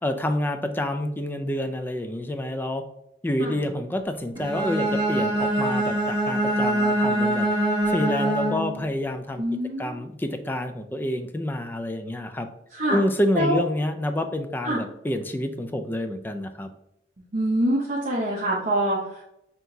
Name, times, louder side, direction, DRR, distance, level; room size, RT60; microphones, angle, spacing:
voice 1, 0.0-2.8 3.2-7.5 7.9-9.4 9.8-12.5 12.9-16.7, left 1 dB, 10° left, 8 dB, 0.3 m, -28 dB
Bowed string instrument, 4.3-8.8, right 1 dB, 25° right, 1.0 m, -24 dB
voice 2, 9.4-10.0 12.7-13.0 13.3-13.6 14.6-14.8 17.3-19.2, right 1 dB, 45° right, -5 dB, 0.8 m, -25 dB
5.6 x 2.9 x 2.6 m, 0.79 s
head